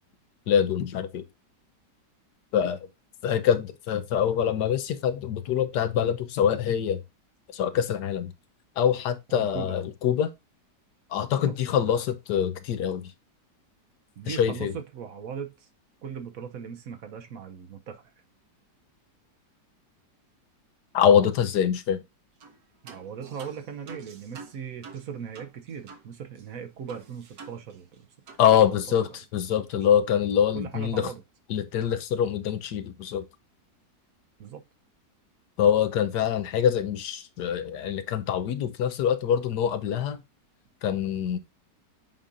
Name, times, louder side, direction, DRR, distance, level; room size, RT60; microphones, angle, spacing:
voice 1, 0.5-1.2 2.5-2.9 3.2-7.0 7.5-8.3 8.8-10.3 11.1-13.1 14.3-14.7 20.9-22.0 28.4-31.1 31.5-33.2 35.6-40.2 40.8-41.4, left 9 dB, 75° left, 1.3 m, -24 dB
voice 2, 9.3-9.8 14.2-15.7 16.0-18.0 22.8-28.1 28.7-29.0 29.5-29.9 30.5-31.2 34.4-34.6, right 7 dB, 60° right, 1.1 m, -39 dB
sound 1, 22.4-22.6 22.9-26.1 26.4-26.5 26.9-28.0 28.3-28.5, right 4 dB, 80° right, 1.8 m, -47 dB
7.4 x 5.3 x 2.5 m
omnidirectional pair, 1.8 m